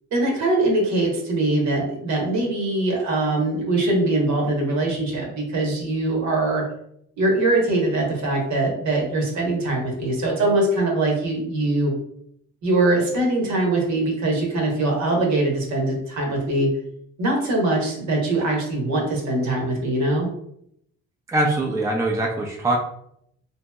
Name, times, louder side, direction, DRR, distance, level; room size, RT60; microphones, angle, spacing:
voice 1, 0.1-6.6 7.2-11.9 12.6-16.7 17.2-20.3, right 2 dB, 65° right, -1 dB, 1.0 m, -22 dB
voice 2, 21.3-22.8, right 1 dB, 10° right, 0 dB, 0.4 m, -22 dB
2.9 x 2.6 x 2.2 m, 0.73 s
cardioid pair, 90°, 30 cm